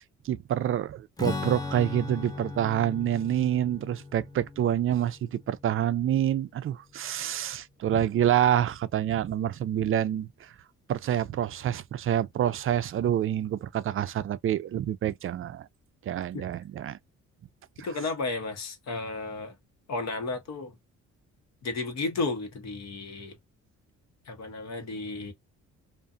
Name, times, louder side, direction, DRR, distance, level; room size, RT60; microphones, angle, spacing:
voice 1, 0.0-10.5 10.9-15.7 16.1-17.0 17.8-17.9, right 10 dB, 45° right, 0.4 m, -27 dB
Strum, 1.2-6.8, left 3 dB, 15° left, 0.5 m, -38 dB
voice 2, 17.8-19.5 19.9-20.7 21.6-23.4 24.3-25.3, left 3 dB, 60° left, 1.1 m, -33 dB
2.5 x 2.5 x 2.4 m
cardioid pair, 90°, 30 cm